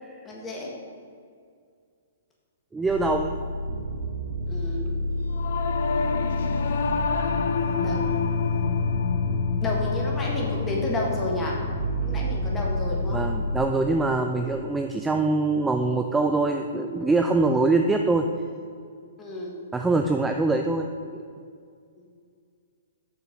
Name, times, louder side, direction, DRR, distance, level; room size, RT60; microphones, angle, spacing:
voice 1, 0.2-0.7 4.5-4.9 7.8-8.4 9.6-11.5 12.0-13.3 19.2-19.6 22.0-22.1, left 1 dB, 15° left, -2 dB, 1.5 m, -31 dB
voice 2, 2.7-3.4 13.1-18.3 19.7-20.9, right 3 dB, 5° right, 4 dB, 0.3 m, -23 dB
sound 1, 2.9-13.6, equal, 55° right, 1.2 m, -30 dB
Singing / Musical instrument, 5.3-14.9, left 6 dB, 65° left, 0.6 m, -29 dB
6.8 x 6.6 x 5.1 m, 2.2 s
hypercardioid pair, 155°, 0 cm